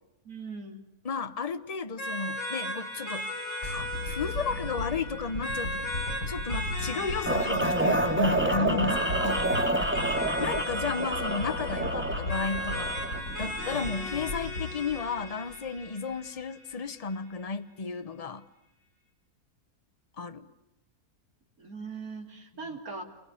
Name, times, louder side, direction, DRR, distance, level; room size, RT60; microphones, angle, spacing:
voice 1, 0.3-0.8 9.0-9.7 21.6-23.0, right 4 dB, 70° right, 2 dB, 3.7 m, -41 dB
voice 2, 1.0-3.3 3.6-5.9 6.3-9.4 10.4-12.9 13.4-18.4 20.2-20.5 22.7-22.8, left 5 dB, 25° left, 11 dB, 1.0 m, -33 dB
sound 1, 2.0-16.9, left 1 dB, 50° left, 7.4 m, -37 dB
sound 2, 3.6-15.8 16.4-16.5, left 2 dB, 80° left, 8.1 m, -37 dB
sound 3, 7.3-13.2, right 2 dB, 10° right, 1.4 m, -28 dB
29.0 x 23.5 x 8.6 m, 0.90 s
omnidirectional pair, 1.6 m